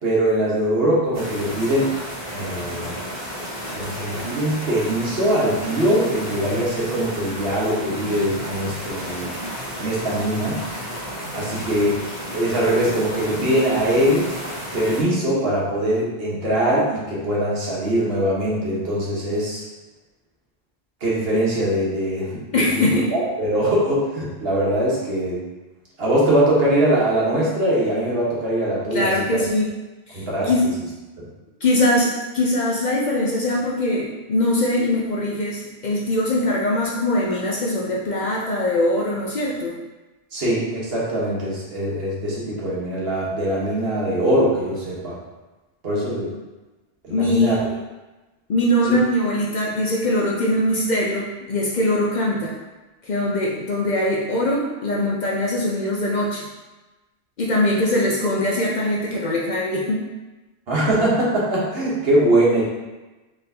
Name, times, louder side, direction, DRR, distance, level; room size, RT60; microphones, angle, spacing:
voice 1, 0.0-1.9 2.3-3.0 3.7-9.3 9.8-10.6 11.3-12.0 12.3-14.3 14.7-19.6 21.0-22.8 23.1-25.4 26.0-29.4 30.1-30.5 31.2-31.3 40.3-45.2 45.8-46.3 47.0-47.6 60.7-62.6, right 1 dB, 65° right, -6 dB, 1.3 m, -22 dB
sound 1, 1.1-15.0, equal, 30° right, 1.4 m, -32 dB
voice 2, 22.5-23.1 28.9-29.7 30.1-30.7 31.6-39.8 47.1-47.5 48.5-52.5 53.1-56.4 57.4-60.1, left 1 dB, 50° left, -3 dB, 0.6 m, -22 dB
4.3 x 3.4 x 2.7 m, 1.1 s
omnidirectional pair, 1.1 m